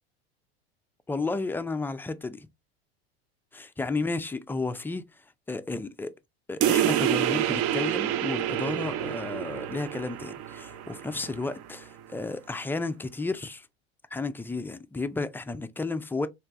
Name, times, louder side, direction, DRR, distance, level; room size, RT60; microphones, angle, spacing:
voice 1, 1.1-2.5 3.5-5.1 5.5-6.1 6.5-13.7 14.1-16.3, left 3 dB, 5° left, 0.3 m, -32 dB
sound 1, 6.6-11.7, right 11 dB, 50° right, 0.6 m, -28 dB
3.2 x 3.0 x 3.7 m
hypercardioid pair, 95°, 31 cm